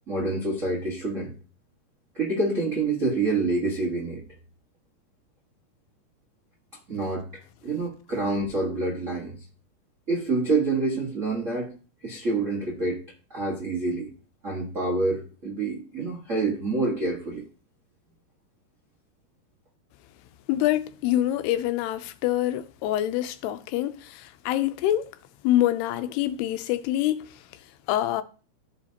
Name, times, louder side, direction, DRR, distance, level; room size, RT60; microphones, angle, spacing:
voice 1, 0.1-1.3 2.1-4.2 6.9-9.4 10.1-11.7 12.0-13.0 13.3-14.1 14.4-17.4, right 3 dB, 85° right, 0.6 m, -27 dB
voice 2, 20.5-25.1 25.4-27.3 27.9-28.2, left 13 dB, 90° left, 2.7 m, -25 dB
14.0 x 4.9 x 2.9 m
omnidirectional pair, 4.6 m